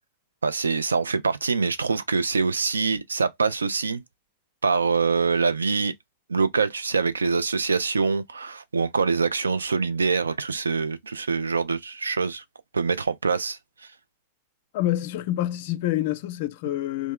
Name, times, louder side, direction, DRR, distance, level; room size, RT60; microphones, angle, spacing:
voice 1, 0.4-4.0 4.6-5.9 6.3-12.4 12.7-13.6, right 4 dB, 75° right, 0.4 m, -24 dB
voice 2, 14.7-17.1, left 14 dB, 50° left, 0.4 m, -27 dB
3.1 x 2.0 x 3.4 m
figure-of-eight pair, 90°, 0 cm